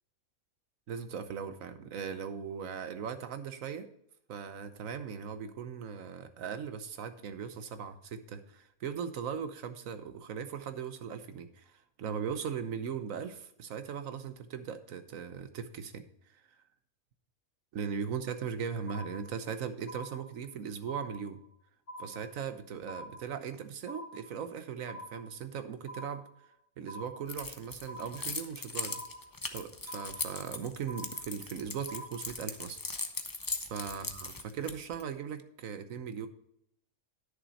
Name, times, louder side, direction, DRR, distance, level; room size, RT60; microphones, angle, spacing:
voice 1, 0.9-3.9 4.3-16.0 17.7-21.4 22.0-26.3 26.8-29.0 29.5-32.8 33.7-36.3, right 7 dB, 65° right, 10 dB, 1.2 m, -39 dB
sound 1, 18.2-18.5 18.9-19.5 19.9-20.5 20.9-21.5 21.9-22.5 22.9-23.5 23.9-24.5 24.9-25.5 25.9-26.5 26.9-27.5 27.9-28.5 28.9-29.5 29.9-30.5 30.9-31.5 31.9-32.5, equal, 55° left, 2.2 m, -47 dB
Keys jangling, 27.3-35.0, left 3 dB, 25° left, 0.5 m, -39 dB
11.0 x 6.6 x 4.1 m, 0.75 s
omnidirectional pair, 1.6 m